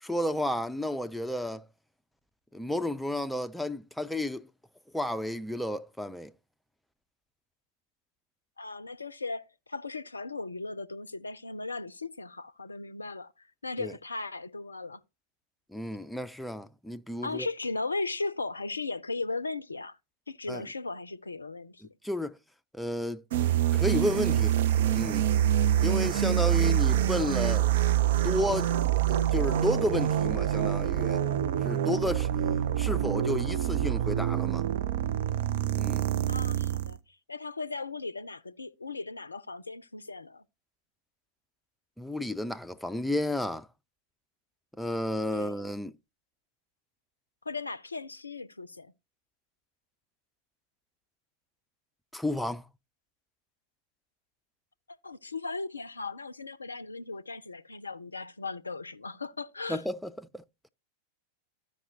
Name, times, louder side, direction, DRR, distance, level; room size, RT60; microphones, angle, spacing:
voice 1, 0.0-1.6 2.5-4.5 4.9-6.3 13.8-13.9 15.7-17.5 20.5-20.6 22.0-22.4 22.7-23.2 23.7-24.5 24.9-25.3 25.8-27.7 28.2-28.7 29.1-31.2 31.6-32.3 32.8-34.7 35.8-36.0 42.0-43.7 44.8-46.0 52.1-52.6 59.7-60.7, left 1 dB, ahead, 0.4 m, -32 dB
voice 2, 8.6-13.3 13.6-15.0 17.2-20.0 20.3-21.8 26.7-26.8 36.3-37.0 37.3-40.4 45.3-45.5 47.5-48.9 54.9-59.8, left 3 dB, 80° left, 0.4 m, -37 dB
sound 1, 23.3-37.0, right 11 dB, 55° right, 0.4 m, -26 dB
13.5 x 5.2 x 2.7 m
figure-of-eight pair, 90°, 0 cm